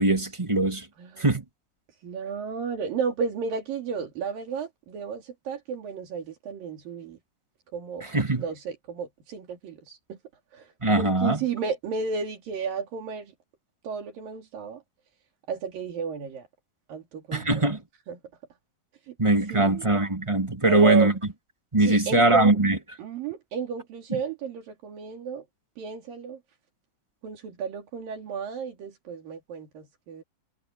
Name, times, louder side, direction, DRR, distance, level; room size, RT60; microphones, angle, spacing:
voice 1, 0.0-0.9 1.2-1.4 8.0-8.4 10.8-11.4 17.3-17.8 19.2-21.1 21.7-22.8 24.1-24.2, right 2 dB, 10° right, 1.5 m, -21 dB
voice 2, 2.0-7.2 7.7-8.1 8.4-10.2 10.5-13.3 13.8-14.8 15.5-16.5 16.9-17.6 18.1-18.2 19.1-19.2 19.5-19.8 20.6-21.1 21.8-22.6 23.0-25.4 25.8-26.4 27.2-30.2, right 6 dB, 80° right, 4.5 m, -32 dB
omnidirectional pair, 4.0 m